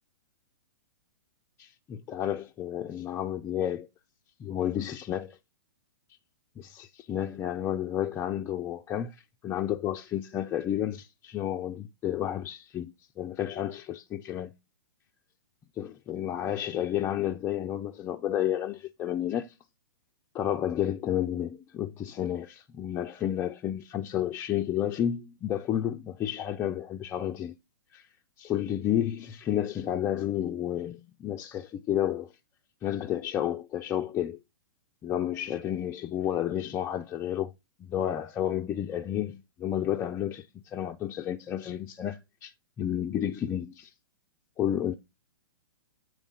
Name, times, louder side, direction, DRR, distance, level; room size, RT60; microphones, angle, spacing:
voice 1, 1.6-3.9 4.4-5.4 6.6-14.5 15.8-19.5 20.3-27.5 27.9-28.1 28.4-32.3 32.8-34.4 35.0-37.5 37.8-42.5 42.8-43.9 44.6-44.9, left 11 dB, 20° left, 0.4 m, -31 dB
8.4 x 3.2 x 5.1 m
hypercardioid pair, 115°, 12 cm